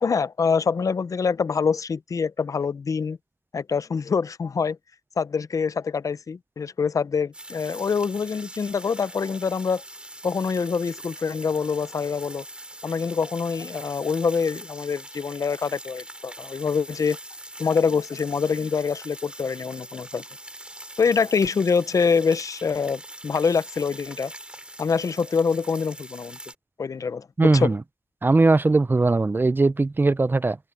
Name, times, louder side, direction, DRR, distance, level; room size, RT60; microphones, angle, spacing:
voice 1, 0.0-3.2 3.5-4.8 5.2-9.8 10.2-12.4 12.8-17.2 17.6-20.2 21.0-24.3 24.8-26.4 26.8-27.7, left 5 dB, 80° left, 0.5 m, -25 dB
sound 1, 7.3-26.6, right 1 dB, 20° right, 4.8 m, -42 dB
voice 2, 27.4-27.8 28.2-30.6, right 3 dB, 35° right, 0.5 m, -19 dB
wide cardioid pair, 55°, 6 cm